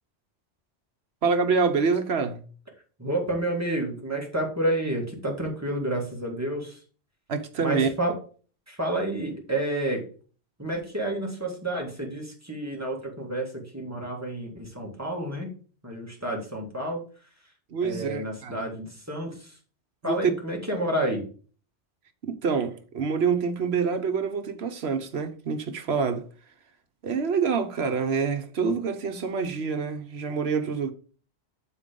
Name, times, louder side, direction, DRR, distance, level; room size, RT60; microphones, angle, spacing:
voice 1, 1.2-2.4 7.3-7.9 17.7-18.6 20.0-20.3 22.2-26.3 27.0-30.9, right 5 dB, 70° right, 1.2 m, -26 dB
voice 2, 3.0-6.8 7.6-8.1 8.7-10.0 10.6-15.5 15.8-17.0 17.8-19.5 20.0-21.2, right 1 dB, 15° right, 2.0 m, -30 dB
6.9 x 4.5 x 5.2 m
omnidirectional pair, 1.1 m